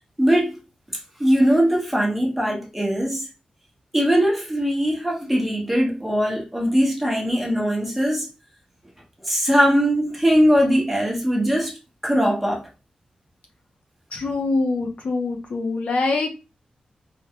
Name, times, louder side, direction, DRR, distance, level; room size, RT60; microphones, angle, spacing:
voice 1, 0.2-0.6 1.2-3.3 3.9-8.3 9.2-11.8 12.0-12.7, equal, 5° right, 0.9 m, -20 dB
voice 2, 14.1-16.3, left 3 dB, 60° left, 0.6 m, -24 dB
3.3 x 2.2 x 2.8 m
wide cardioid pair, 150°, 3 cm